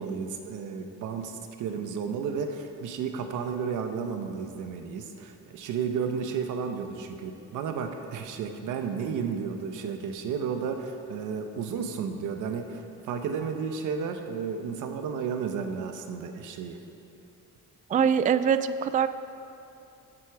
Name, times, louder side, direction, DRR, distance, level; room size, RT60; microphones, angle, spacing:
voice 1, 0.0-16.8, right 6 dB, 85° right, 6 dB, 1.1 m, -32 dB
voice 2, 17.9-19.1, right 7 dB, 25° right, 12 dB, 0.3 m, -23 dB
13.5 x 7.8 x 4.8 m, 2.7 s
cardioid pair, 90°, 30 cm